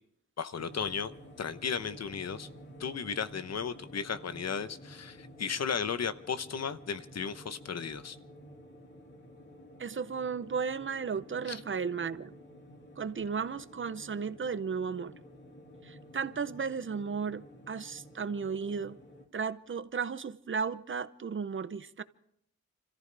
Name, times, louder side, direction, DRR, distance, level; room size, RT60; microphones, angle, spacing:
voice 1, 0.4-1.1 1.4-2.5 2.8-8.2 11.5-11.6, left 6 dB, 60° left, 0.9 m, -35 dB
sound 1, 0.6-19.2, equal, 35° left, 2.6 m, -52 dB
voice 2, 9.8-12.4 13.0-15.1 15.8-19.0 19.3-22.0, right 6 dB, 40° right, 0.7 m, -34 dB
30.0 x 14.5 x 3.4 m
wide cardioid pair, 110°, 30 cm